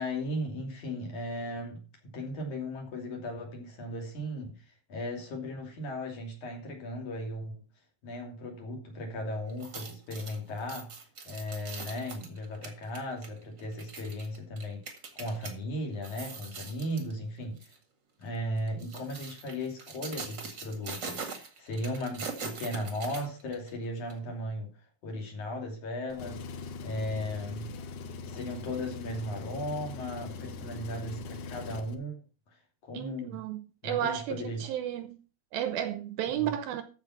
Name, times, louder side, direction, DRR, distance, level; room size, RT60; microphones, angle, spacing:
voice 1, 0.0-7.6 8.0-17.8 18.2-26.5 26.8-27.8 28.2-33.4 33.8-34.7 36.3-36.5, left 1 dB, 50° left, 4.0 m, -37 dB
sound 1, 9.5-15.5 15.9-17.1 17.6-17.8 18.6-23.7 24.1-24.2, right 4 dB, 40° right, 1.7 m, -42 dB
Engine, 26.1-31.9, left 4 dB, 70° left, 2.0 m, -41 dB
voice 2, 32.9-35.2 35.5-36.8, right 10 dB, 75° right, 2.5 m, -33 dB
14.0 x 5.7 x 5.9 m
omnidirectional pair, 4.8 m